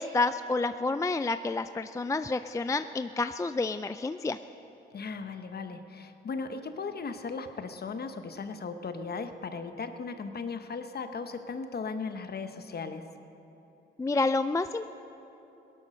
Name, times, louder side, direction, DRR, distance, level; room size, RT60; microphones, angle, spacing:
voice 1, 0.0-4.4 14.0-14.9, left 3 dB, 15° left, 11 dB, 0.3 m, -29 dB
voice 2, 4.9-13.1, left 4 dB, 50° left, 8 dB, 1.0 m, -37 dB
18.0 x 11.0 x 6.4 m, 3.0 s
cardioid pair, 75°, 21 cm